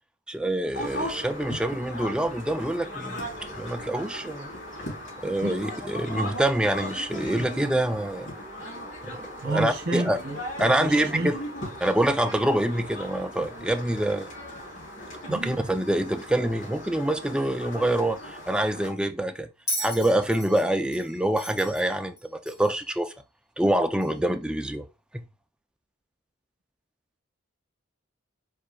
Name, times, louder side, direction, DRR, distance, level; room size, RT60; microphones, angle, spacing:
voice 1, 0.3-3.2 3.5-4.5 5.2-8.3 9.1-10.2 10.6-11.4 11.8-14.3 15.3-19.5 19.8-23.1 23.6-24.9 25.1-25.3, right 1 dB, 5° right, 0.3 m, -26 dB
sound 1, 0.7-18.9, equal, 65° left, 2.9 m, -38 dB
voice 2, 9.4-11.3 15.3-15.6, right 2 dB, 55° right, 1.8 m, -31 dB
Bell, 19.7-22.9 24.0-24.1, equal, 20° left, 1.4 m, -35 dB
4.8 x 4.4 x 2.2 m
head